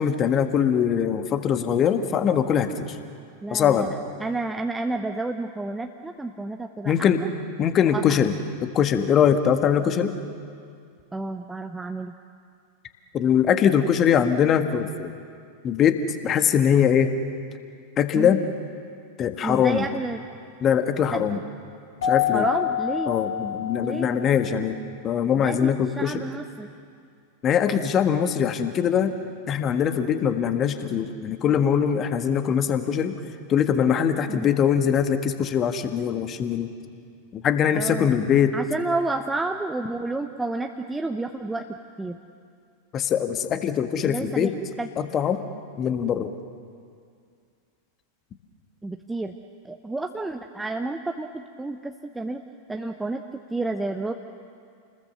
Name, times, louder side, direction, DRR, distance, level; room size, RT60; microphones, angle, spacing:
voice 1, 0.0-3.0 3.5-3.9 6.8-7.2 7.6-8.3 8.6-10.2 13.1-15.1 15.6-17.1 18.0-18.4 19.2-19.8 20.6-21.4 22.0-22.5 23.1-24.8 25.0-26.2 27.4-29.1 29.5-33.1 33.5-36.7 37.3-38.5 42.9-44.5 45.0-45.4 45.8-46.3, left 8 dB, 30° left, 9 dB, 1.6 m, -22 dB
voice 2, 3.4-7.3 7.8-8.2 11.1-12.1 18.1-18.4 19.4-20.2 21.3-21.4 22.3-23.1 23.8-24.1 25.4-26.7 34.3-34.5 37.7-38.1 38.5-41.7 42.0-42.2 44.1-44.5 44.8-44.9 48.8-49.3 49.6-52.4 52.7-53.2 53.5-54.1, right 2 dB, 10° right, 5 dB, 0.9 m, -30 dB
Keyboard (musical), 22.0-24.3, left 11 dB, 65° left, 2.4 m, -26 dB
29.0 x 20.5 x 6.8 m, 2.3 s
figure-of-eight pair, 90°, 0 cm